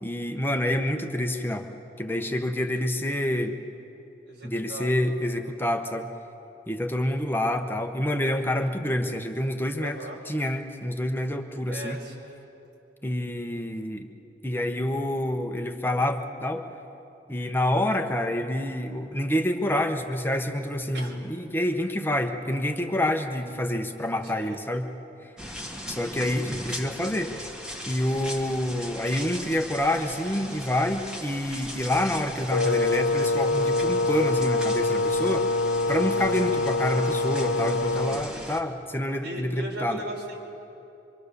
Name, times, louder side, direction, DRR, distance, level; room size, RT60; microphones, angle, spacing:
voice 1, 0.0-1.7 2.0-3.6 4.4-6.1 6.7-12.0 13.0-14.1 14.4-16.6 17.3-24.9 25.9-27.3 27.8-35.5 35.9-40.0, left 1 dB, 10° left, 4 dB, 1.0 m, -27 dB
voice 2, 4.2-5.0 9.8-10.2 11.7-12.4 20.9-21.2 24.3-24.6 38.1-38.5 39.2-40.4, right 1 dB, 90° right, -1 dB, 4.7 m, -38 dB
sound 1, 25.4-38.6, equal, 5° right, 1.8 m, -39 dB
Wind instrument woodwind instrument, 32.5-38.3, left 2 dB, 70° left, 0.5 m, -25 dB
25.0 x 24.5 x 6.8 m, 2.8 s
head